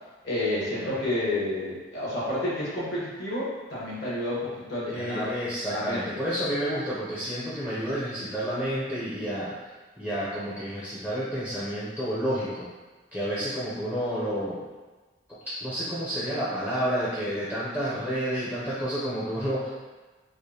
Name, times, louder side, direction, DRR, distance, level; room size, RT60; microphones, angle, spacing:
voice 1, 0.2-5.3 5.7-6.0, left 1 dB, 60° left, -8 dB, 1.3 m, -30 dB
voice 2, 4.9-9.5 10.0-12.7 13.1-14.6 15.5-19.7, equal, 10° left, -10 dB, 0.6 m, -30 dB
4.9 x 2.1 x 2.8 m, 1.3 s
head